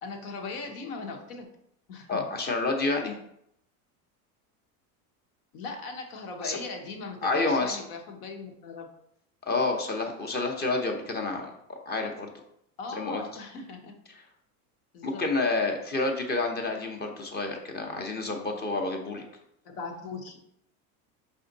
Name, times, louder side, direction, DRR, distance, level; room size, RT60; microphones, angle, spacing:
voice 1, 0.0-1.5 1.9-2.3 5.5-8.9 12.8-14.0 14.9-15.3 19.6-20.4, left 4 dB, 75° left, 3 dB, 1.1 m, -39 dB
voice 2, 2.1-3.2 6.4-6.6 7.2-7.8 9.5-11.5 11.9-12.3 12.9-13.2 15.0-19.2, left 3 dB, 20° left, 3 dB, 0.6 m, -29 dB
5.0 x 2.6 x 3.9 m, 0.74 s
supercardioid pair, 120°, 45 cm